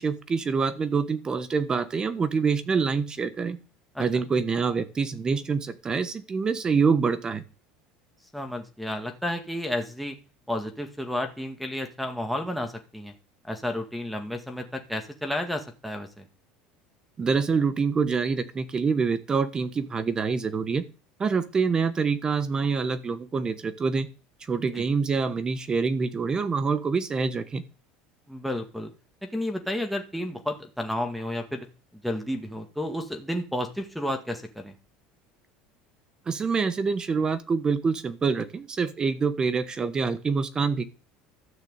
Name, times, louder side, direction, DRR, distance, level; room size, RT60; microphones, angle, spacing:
voice 1, 0.0-3.6 4.0-7.4 17.2-20.8 21.2-24.1 24.5-27.6 36.3-40.8, right 5 dB, 25° right, 13 dB, 1.3 m, -26 dB
voice 2, 8.3-10.2 10.5-13.1 13.4-16.2 24.7-24.8 28.3-28.9 29.2-31.7 32.0-34.7, left 1 dB, ahead, 2 dB, 2.0 m, -31 dB
13.0 x 6.6 x 8.3 m, 0.35 s
supercardioid pair, 110°, 3 cm